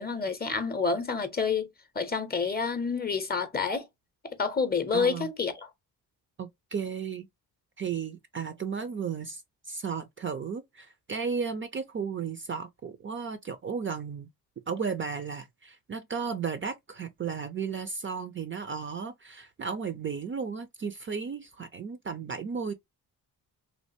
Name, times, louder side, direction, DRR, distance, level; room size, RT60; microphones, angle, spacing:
voice 1, 0.0-1.7 1.9-3.9 4.2-5.7, left 5 dB, 25° left, 0.6 m, -28 dB
voice 2, 4.9-5.3 6.4-7.3 7.8-9.4 9.7-14.3 14.7-22.7, right 6 dB, 30° right, 0.4 m, -34 dB
3.2 x 2.4 x 2.7 m
cardioid pair, 95°, 39 cm